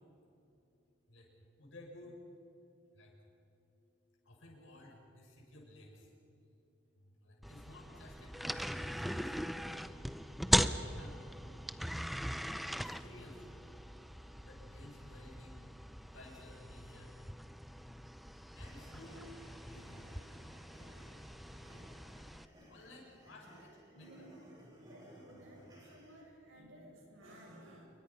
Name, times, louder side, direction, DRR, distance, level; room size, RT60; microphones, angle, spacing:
voice 1, 1.6-2.2 2.9-3.1 4.2-6.1 7.0-9.5 10.7-11.2 12.8-13.5 14.4-17.1 18.5-19.3 19.7-20.1 22.7-24.1, left 1 dB, 80° left, -1 dB, 7.0 m, -55 dB
sound 1, 7.4-22.5, equal, ahead, 0.5 m, -39 dB
sound 2, 18.6-26.2, equal, 20° right, 7.2 m, -58 dB
voice 2, 23.9-24.4 24.7-27.9, right 1 dB, 90° right, -1 dB, 7.6 m, -56 dB
28.5 x 24.0 x 5.6 m, 3.0 s
head